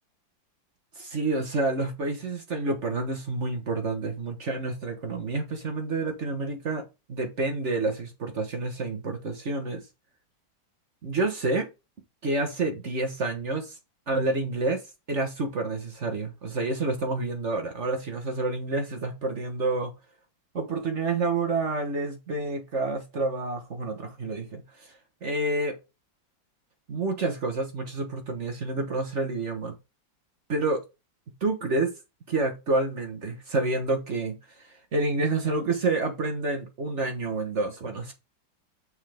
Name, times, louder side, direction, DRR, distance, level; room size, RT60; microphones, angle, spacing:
voice 1, 1.0-6.8 7.1-9.8 11.0-11.7 12.2-13.7 14.1-14.8 15.1-19.9 20.5-24.9 25.2-25.8 26.9-29.8 30.5-30.8 31.4-31.9 32.3-38.1, right 2 dB, 45° right, 1.2 m, -28 dB
6.5 x 5.5 x 3.4 m
omnidirectional pair, 2.1 m